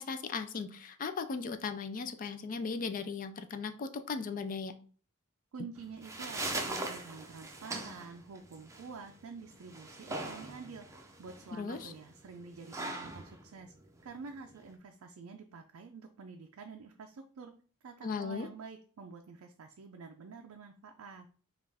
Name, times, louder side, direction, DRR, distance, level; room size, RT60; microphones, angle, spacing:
voice 1, 0.0-4.7 11.5-11.9 18.0-18.5, left 5 dB, 40° left, 9 dB, 0.4 m, -37 dB
voice 2, 5.5-13.7 14.0-17.5 17.8-21.3, right 5 dB, 70° right, 4 dB, 0.4 m, -48 dB
sound 1, 5.8-14.8, right 2 dB, 15° right, 0.6 m, -41 dB
5.3 x 2.4 x 3.4 m, 0.42 s
head